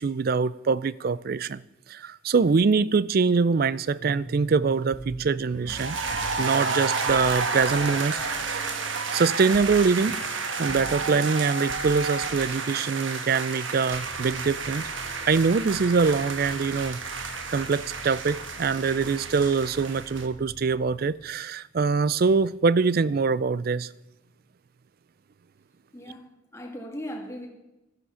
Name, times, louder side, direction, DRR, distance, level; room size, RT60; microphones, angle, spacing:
voice 1, 0.0-1.6 1.9-6.0 6.4-8.6 9.1-10.2 10.6-14.9 15.3-17.0 17.5-23.9, right 5 dB, 45° right, 0.4 m, -24 dB
sound 1, 4.0-12.4, right 2 dB, 90° right, 3.8 m, -42 dB
sound 2, 5.7-20.3, right 4 dB, 65° right, 1.3 m, -31 dB
sound 3, 13.9-21.3, equal, 40° left, 2.7 m, -46 dB
voice 2, 25.9-27.5, equal, 15° left, 1.9 m, -38 dB
12.5 x 10.5 x 5.6 m
head